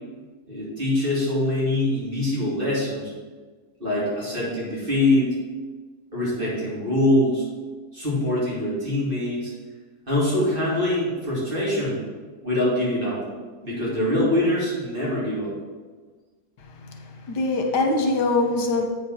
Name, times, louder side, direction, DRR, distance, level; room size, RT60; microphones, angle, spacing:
voice 1, 0.5-3.1 3.8-5.3 6.1-7.4 7.9-9.5 10.1-12.0 12.4-13.2 13.6-15.5, left 1 dB, 30° right, -7 dB, 3.0 m, -23 dB
voice 2, 16.8-18.9, left 2 dB, 85° left, 3 dB, 1.7 m, -23 dB
8.2 x 5.2 x 6.0 m, 1.4 s
omnidirectional pair, 1.8 m